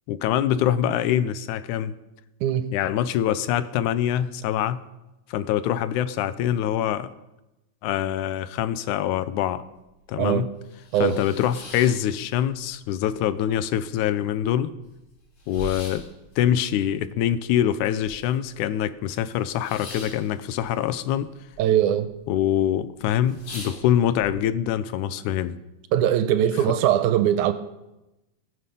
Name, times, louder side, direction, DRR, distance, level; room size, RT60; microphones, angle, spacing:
voice 1, 0.1-2.0 2.7-4.8 5.3-7.1 7.8-9.6 10.1-10.5 11.0-14.7 15.5-16.1 16.4-21.3 22.3-25.6, left 10 dB, 85° left, 14 dB, 2.1 m, -24 dB
voice 2, 2.4-2.7 10.2-10.5 10.9-11.2 21.6-22.1 25.9-27.5, right 10 dB, 85° right, 11 dB, 2.1 m, -21 dB
sound 1, 10.0-10.1 10.5-12.7 13.0-13.8 14.1-14.2 14.4-18.5 18.8-21.6 21.9-22.4 22.8-22.9 23.2-24.3, left 1 dB, 65° left, 3.9 m, -42 dB
18.5 x 6.7 x 5.3 m, 0.96 s
omnidirectional pair, 3.4 m